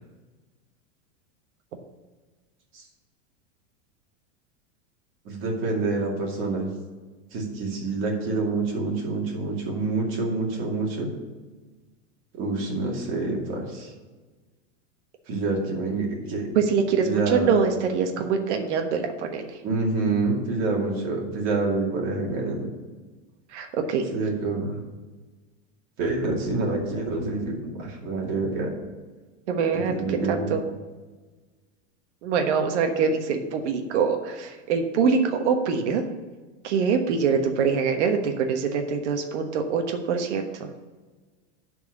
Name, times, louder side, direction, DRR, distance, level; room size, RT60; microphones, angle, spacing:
voice 1, 5.2-6.7 7.3-11.1 12.4-13.9 15.3-16.5 17.0-17.6 19.6-22.7 24.1-24.8 26.0-28.7 29.9-30.5, right 3 dB, 35° right, -1 dB, 2.4 m, -27 dB
voice 2, 16.5-19.6 23.5-24.0 29.5-30.6 32.2-36.0 36.6-40.7, right 6 dB, 80° right, 4 dB, 1.3 m, -24 dB
10.5 x 4.6 x 6.6 m, 1.3 s
supercardioid pair, 165°, 34 cm